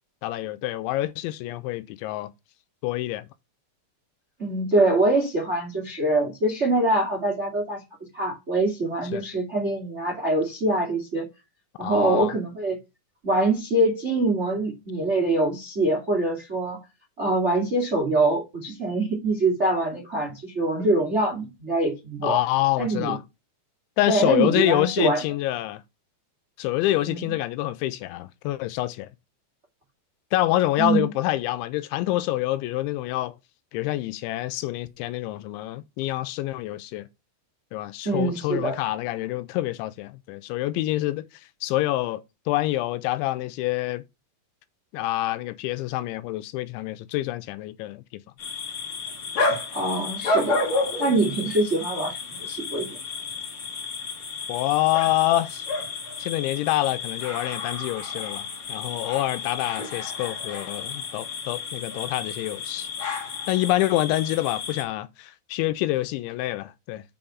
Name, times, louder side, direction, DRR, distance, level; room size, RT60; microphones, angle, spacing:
voice 1, 0.2-2.3 2.8-3.3 9.1-9.2 11.8-12.3 22.2-23.2 24.0-25.8 26.6-29.1 30.3-33.4 33.7-37.1 37.7-41.3 41.6-44.0 44.9-48.0 54.5-55.7 56.2-62.9 63.5-67.0, left 16 dB, 85° left, 2.9 m, -26 dB
voice 2, 4.4-7.8 8.1-11.3 11.8-12.8 13.2-16.8 17.2-22.4 22.8-23.1 24.1-25.2 27.0-27.3 30.8-31.1 38.0-38.8 49.7-50.6 51.0-53.0, right 2 dB, 65° right, 0.6 m, -24 dB
sound 1, 48.4-64.8, left 3 dB, 60° left, 1.3 m, -31 dB
7.1 x 5.0 x 5.9 m
omnidirectional pair, 5.4 m